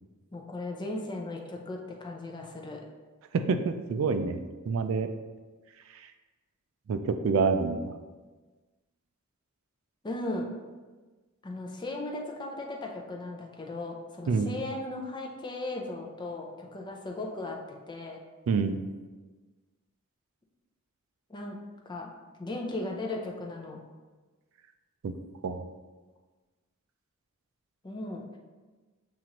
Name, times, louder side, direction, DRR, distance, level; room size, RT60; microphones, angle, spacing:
voice 1, 0.3-2.8 10.0-10.5 11.4-18.2 21.3-21.6 21.9-22.1 22.4-23.8 27.8-28.2, left 2 dB, 20° left, 0 dB, 0.5 m, -37 dB
voice 2, 3.3-4.4 4.7-5.1 6.9-8.0 14.3-14.5 18.5-18.8 25.0-25.1 25.4-25.7, right 4 dB, 65° right, 8 dB, 0.3 m, -27 dB
7.2 x 2.5 x 2.9 m, 1.3 s
head